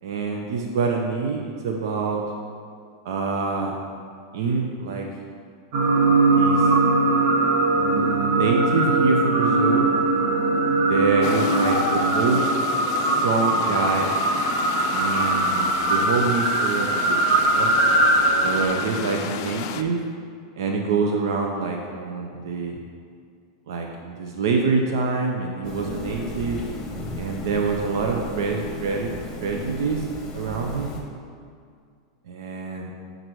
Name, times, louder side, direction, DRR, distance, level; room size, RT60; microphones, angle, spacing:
voice 1, 0.0-2.2 3.0-3.8 4.3-5.1 6.3-6.7 7.7-9.9 10.7-12.5 12.9-14.1 14.9-17.7 18.4-20.0 20.6-22.8 23.7-26.6 27.2-29.1 29.4-30.1 30.3-31.0 32.3-32.9, right 4 dB, 75° right, 1 dB, 0.6 m, -26 dB
sound 1, 5.7-18.7, right 2 dB, 50° right, 1.0 m, -21 dB
sound 2, 11.2-19.8, left 8 dB, 55° left, 0.4 m, -31 dB
sound 3, 25.6-31.0, left 1 dB, 25° left, 1.0 m, -35 dB
7.7 x 3.9 x 4.6 m, 2.2 s
supercardioid pair, 135°, 2 cm